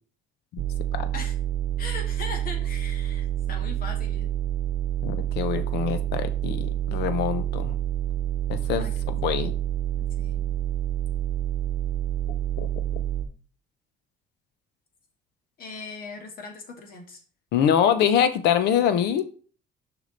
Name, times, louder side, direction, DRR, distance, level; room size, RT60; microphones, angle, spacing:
sound 1, 0.6-13.2, right 11 dB, 80° right, 0.8 m, -28 dB
voice 1, 1.8-4.3 8.8-8.9 10.0-10.5 15.6-17.2, left 3 dB, 60° left, 4 dB, 2.0 m, -39 dB
voice 2, 5.0-7.8 8.5-9.5 12.6-12.8 17.5-19.2, left 9 dB, 80° left, 11 dB, 0.9 m, -24 dB
6.5 x 5.0 x 4.0 m, 0.41 s
cardioid pair, 110°, 17 cm